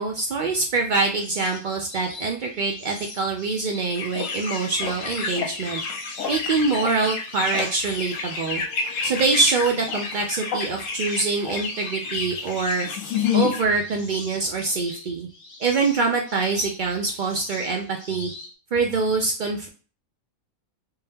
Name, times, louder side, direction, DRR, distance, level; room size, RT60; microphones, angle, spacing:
voice 1, 0.0-5.8 6.3-8.6 9.0-12.9 13.3-15.3 15.6-18.3 18.7-19.7, right 3 dB, 90° right, 1 dB, 0.4 m, -24 dB
sound 1, 1.1-18.5, left 3 dB, 45° left, 1.1 m, -43 dB
sound 2, 3.9-13.6, left 6 dB, 70° left, 1.0 m, -29 dB
3.5 x 2.8 x 3.4 m, 0.38 s
omnidirectional pair, 1.5 m